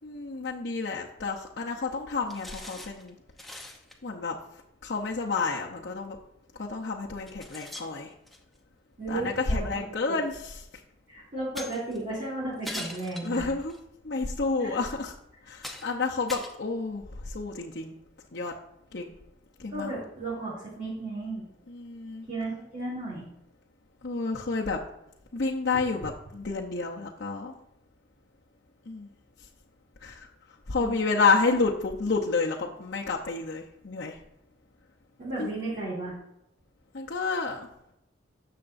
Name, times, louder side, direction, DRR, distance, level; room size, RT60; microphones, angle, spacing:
voice 1, 0.0-3.2 4.0-4.4 4.8-6.2 6.6-8.1 9.1-10.6 13.2-13.7 14.0-15.1 15.5-17.9 18.3-18.5 18.9-19.1 19.6-19.9 21.7-22.3 24.0-24.8 25.3-27.5 28.9-29.1 30.0-30.3 30.7-34.2 35.4-35.5 36.9-37.7, left 4 dB, 60° left, -3 dB, 0.8 m, -30 dB
sound 1, 2.3-3.1 3.4-3.9 5.4-5.5 6.5-6.6 7.3-8.6 9.8-9.9 11.6-12.0 12.6-13.8 14.5-14.6 15.1-15.2 15.6-16.0 16.3-17.2, left 1 dB, ahead, 0.8 m, -41 dB
voice 2, 9.0-9.8 10.1-10.2 11.1-13.5 14.6-14.8 19.7-21.4 22.3-23.3 30.8-31.0 35.2-36.2, right 2 dB, 45° right, -8 dB, 2.9 m, -34 dB
11.0 x 6.7 x 2.6 m, 0.83 s
head